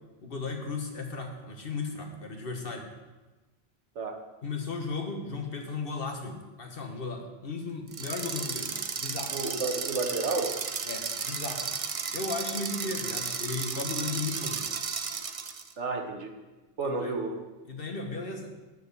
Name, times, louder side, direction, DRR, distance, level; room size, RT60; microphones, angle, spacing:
voice 1, 0.2-2.9 4.4-9.6 10.8-11.7 12.1-14.6 16.8-17.1 17.7-18.5, left 3 dB, 55° left, 2 dB, 1.5 m, -35 dB
sound 1, 7.9-15.7, right 5 dB, 40° right, 0.5 m, -34 dB
voice 2, 9.3-10.6 15.8-16.4 16.8-17.4, right 3 dB, 85° right, 3 dB, 1.6 m, -31 dB
9.6 x 6.4 x 6.9 m, 1.2 s
omnidirectional pair, 1.2 m